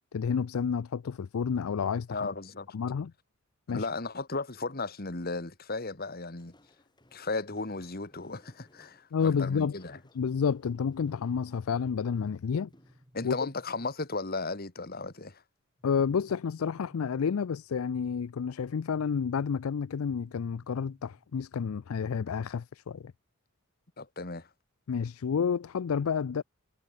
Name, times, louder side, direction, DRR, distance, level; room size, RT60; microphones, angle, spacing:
voice 1, 0.1-2.3 2.7-3.1 3.7-3.9 9.1-9.8 10.2-12.7 13.2-13.5 15.8-23.0 24.9-26.4, left 6 dB, 75° left, 0.4 m, -30 dB
voice 2, 2.1-2.7 3.7-6.5 7.1-10.0 13.1-15.4 24.0-24.5, left 3 dB, 45° left, 1.9 m, -35 dB
Walk footsteps, 6.3-13.5, left 1 dB, 20° left, 4.3 m, -64 dB
sound 1, 12.1-14.1 15.8-17.8 19.5-21.5, equal, 20° right, 7.9 m, -62 dB
head